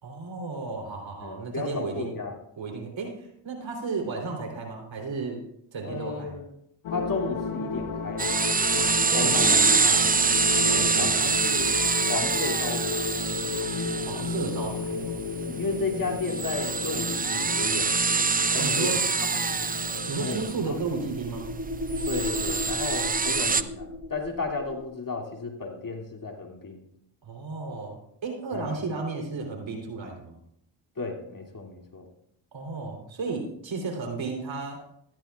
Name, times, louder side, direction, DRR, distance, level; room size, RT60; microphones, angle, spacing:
voice 1, 0.0-2.2 2.6-5.4 5.7-6.4 8.8-10.1 10.6-11.3 14.0-15.1 18.6-19.0 20.1-21.5 27.2-30.4 32.5-34.8, right 4 dB, 65° right, 2 dB, 3.5 m, -33 dB
voice 2, 1.2-2.3 5.8-6.4 6.9-8.3 9.1-10.0 10.7-11.7 12.1-13.2 15.5-17.9 18.5-19.0 19.2-19.6 20.2-20.8 22.1-26.8 28.5-28.8 31.0-32.1, left 4 dB, 40° left, 1 dB, 2.7 m, -33 dB
sound 1, 6.8-20.7, left 4 dB, 90° left, 1.7 m, -33 dB
sound 2, 8.2-23.6, right 4 dB, 20° right, 0.5 m, -26 dB
sound 3, 20.0-24.8, left 1 dB, 50° right, 5.1 m, -35 dB
15.0 x 13.5 x 2.4 m, 0.75 s
supercardioid pair, 50°, 49 cm